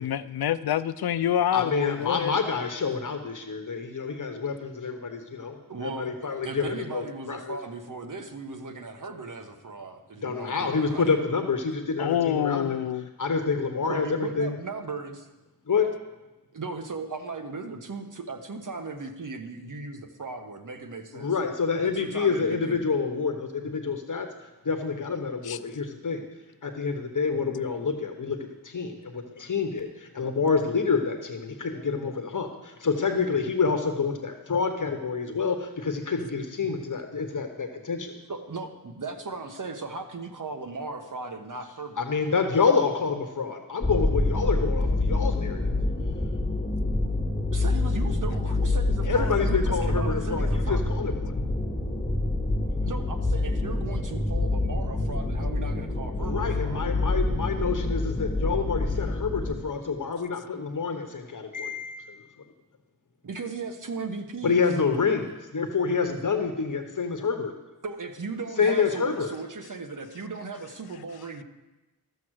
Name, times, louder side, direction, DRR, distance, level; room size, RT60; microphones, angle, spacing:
voice 1, 0.0-2.3 12.0-13.1 25.4-25.6, left 10 dB, 85° left, 15 dB, 0.5 m, -26 dB
voice 2, 1.5-7.6 10.2-12.8 13.2-14.6 15.7-15.9 21.1-24.3 24.6-26.2 26.6-28.4 28.6-38.2 42.0-45.7 49.0-51.3 56.2-62.3 64.4-67.5 68.6-69.3, left 5 dB, 55° left, 5 dB, 1.2 m, -27 dB
voice 3, 5.7-11.1 13.9-15.3 16.5-21.5 21.8-22.9 38.3-42.1 47.5-50.8 52.8-56.8 63.2-64.6 67.8-71.4, right 4 dB, 55° right, 5 dB, 1.3 m, -37 dB
sound 1, 43.8-59.6, left 2 dB, 15° left, 2.2 m, -27 dB
13.5 x 7.0 x 6.4 m, 1.1 s
wide cardioid pair, 90°, 36 cm